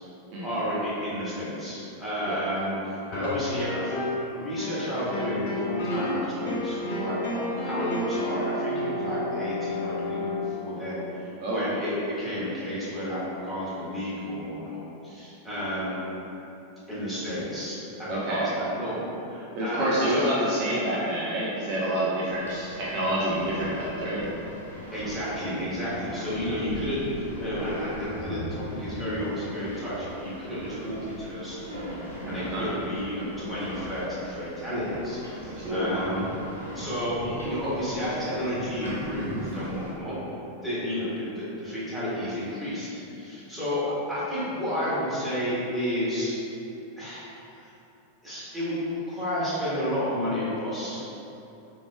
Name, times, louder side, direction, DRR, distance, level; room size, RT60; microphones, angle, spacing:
voice 1, 0.4-16.0 16.9-20.3 24.9-36.3 36.7-40.2 40.6-46.3 47.0-47.3 47.5-47.7 48.2-51.0, equal, ahead, -12 dB, 1.3 m, -31 dB
sound 1, 3.1-4.3 4.6-10.5, left 1 dB, 55° left, 0.5 m, -31 dB
voice 2, 18.1-18.5 19.5-24.3 32.4-32.7 35.5-36.0, right 1 dB, 40° right, -7 dB, 0.5 m, -28 dB
sound 2, 22.2-39.9, equal, 80° left, 0.9 m, -39 dB
3.8 x 3.1 x 2.3 m, 2.9 s
figure-of-eight pair, 90°, 0 cm